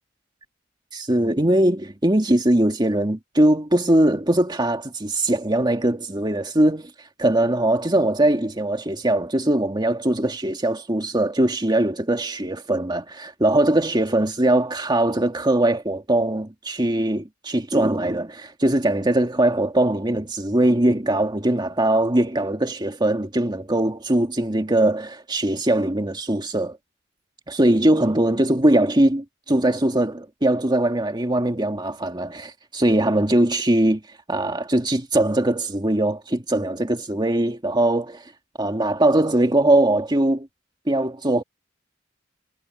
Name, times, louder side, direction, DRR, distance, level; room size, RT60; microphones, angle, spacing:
voice 1, 0.9-6.9 7.2-26.8 27.5-34.0 34.3-38.3 38.6-40.5 40.9-41.4, right 1 dB, 25° right, 2.1 m, -21 dB
head